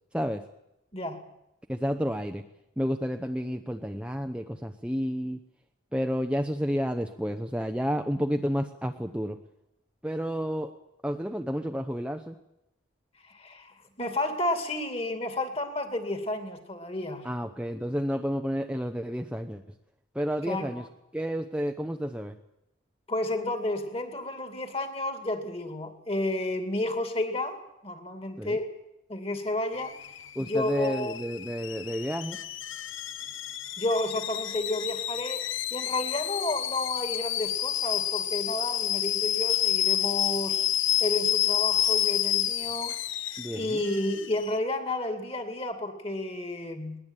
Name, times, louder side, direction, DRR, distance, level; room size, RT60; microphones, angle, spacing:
voice 1, 1.7-2.4 2.8-5.4 5.9-9.4 10.0-10.7 11.0-12.3 17.2-19.6 20.1-20.8 21.1-22.3 28.4-28.6 30.4-32.4 43.4-43.8, equal, 5° right, 5 dB, 0.8 m, -30 dB
voice 2, 13.3-17.2 20.5-20.8 23.1-28.7 29.1-30.0 30.4-31.2 33.8-40.7 41.0-47.0, left 1 dB, 30° left, 7 dB, 2.7 m, -31 dB
Alarm / Boiling, 29.7-44.6, left 11 dB, 80° left, 1.2 m, -30 dB
21.0 x 19.5 x 9.1 m, 0.85 s
head